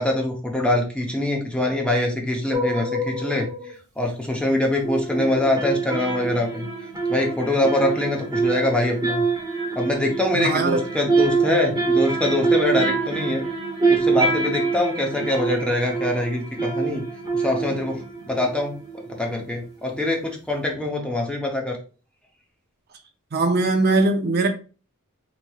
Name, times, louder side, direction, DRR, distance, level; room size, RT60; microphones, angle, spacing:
voice 1, 0.0-3.5 4.0-6.7 7.1-9.2 9.7-13.5 13.9-17.0 17.3-18.0 18.3-18.8 19.1-21.8, left 1 dB, 5° left, 0.7 m, -24 dB
sound 1, 2.5-3.7 4.8-19.4 19.6-19.7, right 4 dB, 20° right, 1.0 m, -25 dB
voice 2, 10.3-10.8 23.3-24.5, right 2 dB, 45° right, 0.5 m, -20 dB
4.2 x 3.1 x 2.3 m
head